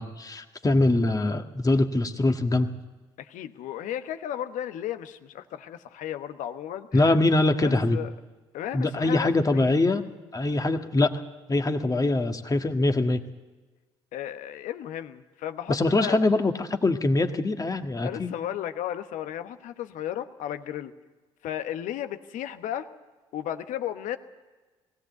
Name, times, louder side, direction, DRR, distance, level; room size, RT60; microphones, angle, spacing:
voice 1, 0.0-2.7 6.9-8.0 8.7-10.0 10.3-11.2 11.5-13.2 15.7-18.3, left 2 dB, 25° left, 6 dB, 1.6 m, -23 dB
voice 2, 3.2-7.2 7.6-8.1 8.5-9.7 14.1-16.2 18.0-20.9 21.4-22.9 23.3-24.2, left 11 dB, 70° left, 10 dB, 1.1 m, -34 dB
20.0 x 16.5 x 8.0 m, 1.3 s
hypercardioid pair, 50°, 14 cm